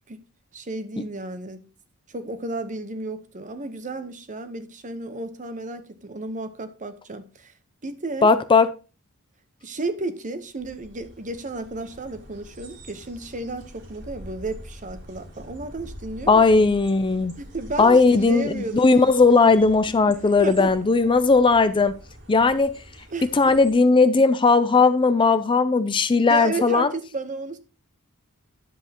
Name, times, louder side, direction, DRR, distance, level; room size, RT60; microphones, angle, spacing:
voice 1, 0.5-1.6 2.1-7.5 7.8-8.3 9.6-16.7 17.4-18.8 20.4-20.7 23.1-23.3 26.3-27.6, right 2 dB, 35° right, 1.0 m, -33 dB
voice 2, 8.2-8.7 16.3-17.3 17.8-22.0 22.3-22.8 23.2-26.9, left 4 dB, 20° left, 0.4 m, -17 dB
sound 1, 10.5-23.7, equal, 55° right, 3.0 m, -45 dB
10.0 x 7.8 x 2.9 m
head